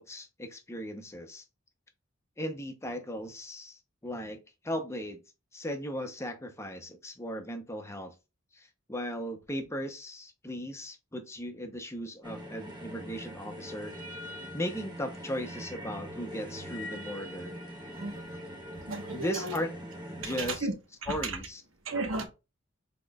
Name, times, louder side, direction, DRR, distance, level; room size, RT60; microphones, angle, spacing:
voice 1, 0.0-1.4 2.4-4.4 4.6-5.2 5.5-8.1 8.5-13.9 14.5-17.6 19.1-19.7 20.2-20.7 21.1-21.6, equal, 15° left, 0.7 m, -37 dB
sound 1, 12.2-20.5, equal, 20° right, 1.1 m, -42 dB
voice 2, 18.0-18.4 18.7-19.6 20.2-20.7 21.0-21.4 21.8-22.2, right 3 dB, 85° right, 1.1 m, -35 dB
5.9 x 3.7 x 2.3 m
head